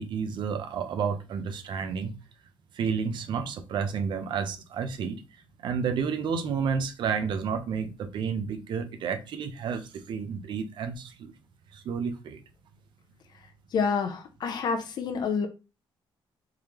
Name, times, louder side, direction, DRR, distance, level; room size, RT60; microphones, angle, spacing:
voice 1, 0.0-2.2 2.7-5.2 5.6-11.3 11.7-12.4, right 6 dB, 60° right, 0.6 m, -31 dB
voice 2, 13.7-15.5, left 5 dB, 50° left, 0.7 m, -28 dB
3.7 x 3.3 x 2.9 m
cardioid pair, 155°, 9 cm